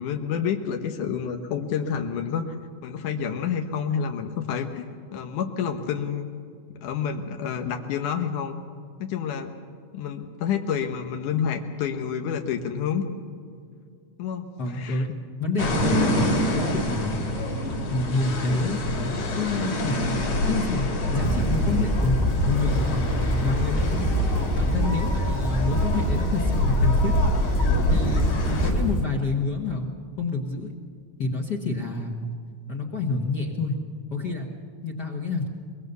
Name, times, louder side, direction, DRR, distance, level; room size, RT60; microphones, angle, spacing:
voice 1, 0.0-2.6 2.8-6.3 6.7-8.6 9.0-9.5 9.9-13.1 14.2-15.1 27.7-28.0, left 7 dB, 85° left, 5 dB, 2.7 m, -29 dB
voice 2, 14.6-15.1 15.4-17.2 17.9-20.1 20.5-20.9 21.1-22.2 22.5-23.0 23.4-24.1 24.6-27.1 27.9-30.7 31.2-32.3 32.7-33.8 34.1-34.5 34.8-35.5, left 3 dB, 40° left, 1 dB, 1.7 m, -28 dB
sound 1, 15.6-28.7, left 1 dB, 60° left, 3.9 m, -26 dB
sound 2, 21.2-29.0, equal, 10° left, 1.4 m, -25 dB
23.5 x 21.5 x 6.9 m, 2.3 s
omnidirectional pair, 3.5 m